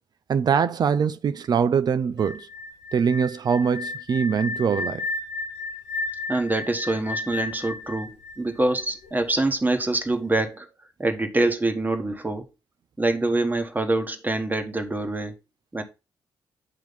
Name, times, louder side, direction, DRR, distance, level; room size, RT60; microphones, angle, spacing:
voice 1, 0.3-2.5 2.9-5.1, right 6 dB, 50° right, 0.5 m, -23 dB
sound 1, 2.2-9.1, left 3 dB, 90° left, 0.8 m, -33 dB
voice 2, 6.3-10.7 11.0-12.5 13.0-15.3 15.7-15.8, right 2 dB, 20° right, 1.4 m, -25 dB
8.6 x 3.0 x 5.3 m
hypercardioid pair, 40°, 9 cm